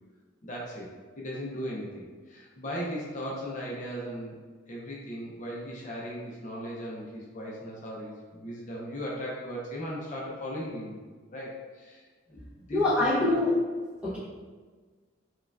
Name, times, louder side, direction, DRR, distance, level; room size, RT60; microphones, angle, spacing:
voice 1, 0.4-0.9 1.2-4.4 4.7-10.9 11.3-13.1 14.0-14.2, equal, 40° left, -4 dB, 0.5 m, -37 dB
voice 2, 12.7-13.5 14.0-14.2, left 2 dB, 5° right, -7 dB, 0.6 m, -24 dB
4.7 x 2.3 x 2.3 m, 1.5 s
head